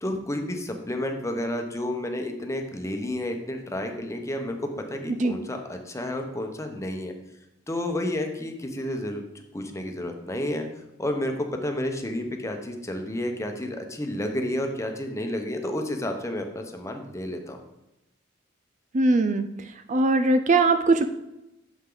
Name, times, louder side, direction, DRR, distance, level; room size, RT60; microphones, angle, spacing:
voice 1, 0.0-7.1 7.7-9.2 9.5-10.7 11.0-17.6, left 1 dB, 15° left, 4 dB, 1.0 m, -31 dB
voice 2, 18.9-19.5 19.9-21.0, right 2 dB, 40° right, 9 dB, 0.4 m, -20 dB
9.0 x 7.3 x 3.9 m, 0.90 s
head